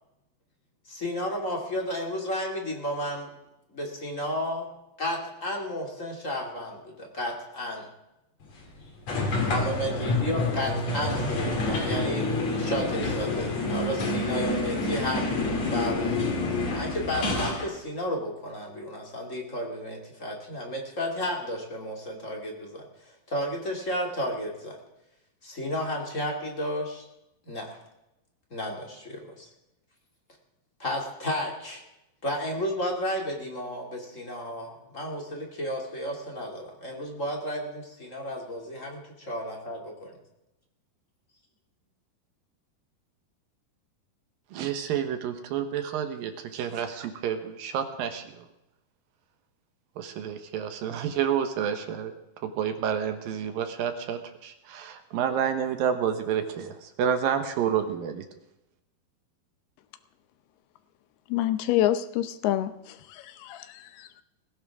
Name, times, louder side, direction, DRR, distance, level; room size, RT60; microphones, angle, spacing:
voice 1, 0.9-3.3 3.7-4.7 5.0-7.9 9.4-16.4 16.7-22.8 23.3-24.8 25.4-27.0 27.5-27.8 28.5-29.5 30.8-31.8 32.2-40.1, equal, 25° left, 0 dB, 2.3 m, -32 dB
sound 1, 9.1-17.6, left 2 dB, 45° left, 3.9 m, -28 dB
voice 2, 44.5-48.4 50.0-52.1 52.4-58.2, right 8 dB, 70° right, 8 dB, 2.6 m, -29 dB
voice 3, 61.3-64.2, left 13 dB, 85° left, 11 dB, 2.8 m, -28 dB
19.5 x 16.0 x 3.6 m, 0.91 s
omnidirectional pair, 4.5 m